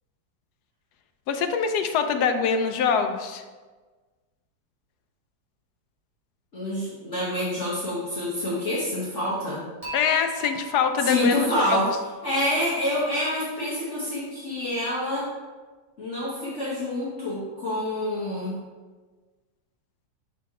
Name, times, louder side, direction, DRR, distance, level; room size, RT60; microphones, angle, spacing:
voice 1, 1.3-3.4 9.9-11.8, left 6 dB, 70° left, 7 dB, 1.0 m, -24 dB
voice 2, 6.5-9.6 11.0-11.9 12.2-15.3 16.0-18.5, left 1 dB, 45° left, -8 dB, 1.4 m, -27 dB
Dishes pots and pans / Chink clink, 9.8-13.0, right 1 dB, 20° right, 1.7 m, -41 dB
5.9 x 4.7 x 3.6 m, 1.3 s
omnidirectional pair, 2.0 m